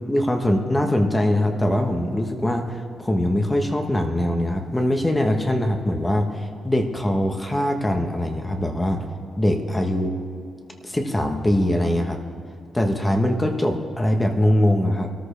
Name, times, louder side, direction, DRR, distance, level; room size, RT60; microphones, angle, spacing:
voice 1, 0.1-9.0 9.4-10.1 10.8-12.2 12.7-15.1, left 1 dB, 15° left, 3 dB, 1.1 m, -22 dB
23.0 x 13.0 x 3.4 m, 2.7 s
wide cardioid pair, 140°, 0 cm